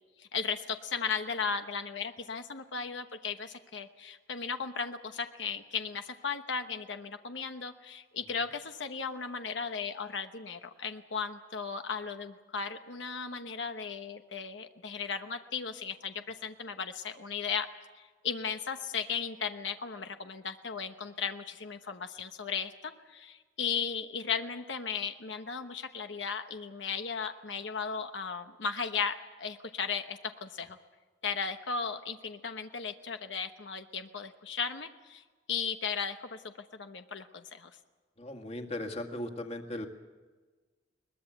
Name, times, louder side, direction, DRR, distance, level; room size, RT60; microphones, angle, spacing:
voice 1, 0.2-17.7 18.0-30.8 31.2-35.2 35.5-37.7, left 6 dB, 90° left, 7 dB, 1.1 m, -36 dB
voice 2, 38.2-39.9, left 1 dB, 35° left, 5 dB, 2.0 m, -37 dB
22.0 x 20.5 x 8.0 m, 1.3 s
head